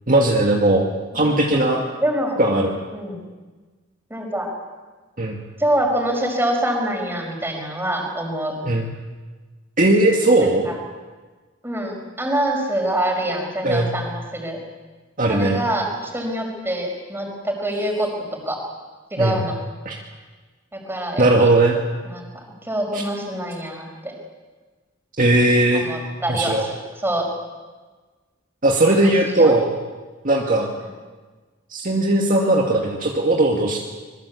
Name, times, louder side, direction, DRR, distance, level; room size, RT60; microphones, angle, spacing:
voice 1, 0.1-0.9 1.1-1.8 2.4-2.8 5.2-5.4 8.7-8.9 9.8-10.7 13.6-13.9 15.2-15.6 19.2-19.4 19.9-20.0 21.2-21.8 22.9-23.0 25.2-25.9 26.3-26.6 28.6-29.8 30.2-30.7 31.7-33.8, right 2 dB, 45° right, 0 dB, 2.2 m, -18 dB
voice 2, 1.1-1.6 2.0-2.4 2.9-3.2 4.1-4.5 5.6-8.5 10.4-10.8 11.6-14.6 15.3-18.6 19.1-19.6 20.7-21.5 22.0-22.3 22.6-24.1 25.7-27.3 28.9-29.6, right 1 dB, 10° right, 2 dB, 5.4 m, -25 dB
26.0 x 22.0 x 8.5 m, 1.3 s
head